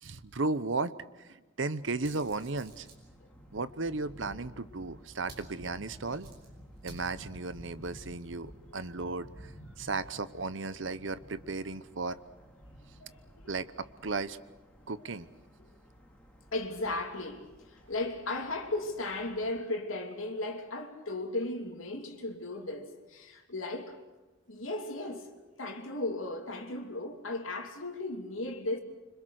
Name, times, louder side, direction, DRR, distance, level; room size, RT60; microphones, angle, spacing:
voice 1, 0.0-2.9 3.5-6.3 6.8-12.2 13.5-14.4 14.9-15.3, right 3 dB, 65° right, 0.9 m, -35 dB
sound 1, 1.8-19.6, equal, 5° left, 2.9 m, -53 dB
sound 2, 1.9-3.1 5.2-8.2, right 3 dB, 50° right, 5.7 m, -55 dB
voice 2, 13.0-13.5 16.5-24.0 24.5-25.3 25.6-28.8, left 2 dB, 90° left, 2.9 m, -36 dB
26.0 x 25.5 x 6.5 m
head